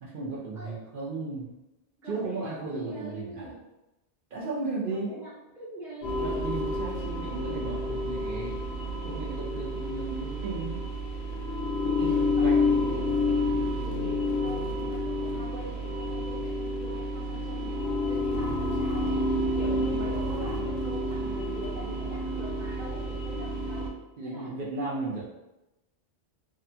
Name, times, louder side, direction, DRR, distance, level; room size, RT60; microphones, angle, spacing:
voice 1, 0.0-1.5 2.0-3.5 4.3-5.1 6.2-8.6 9.0-10.9 11.8-12.8 24.2-25.2, right 3 dB, 60° right, -6 dB, 0.7 m, -35 dB
voice 2, 2.0-3.6 4.9-6.5 12.0-13.4 13.8-17.8 18.1-19.2 19.6-23.9 24.2-24.5, right 1 dB, 5° right, -7 dB, 0.6 m, -42 dB
sound 1, 6.0-23.9, left 1 dB, 75° left, 0.8 m, -29 dB
2.7 x 2.2 x 2.7 m, 0.96 s
omnidirectional pair, 1.1 m